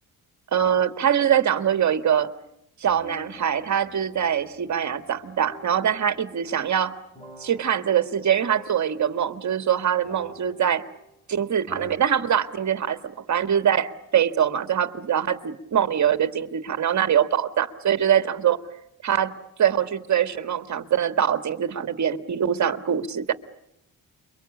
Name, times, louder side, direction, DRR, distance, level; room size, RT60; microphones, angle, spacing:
voice 1, 0.5-2.3 2.8-6.9 7.4-10.9 11.3-18.6 19.0-19.3 19.6-23.3, right 9 dB, 50° right, 10 dB, 1.7 m, -23 dB
sound 1, 2.8-11.3 11.7-12.0, left 2 dB, 15° left, 5.8 m, -48 dB
29.5 x 23.5 x 8.5 m, 0.79 s
cardioid pair, 115°, 37 cm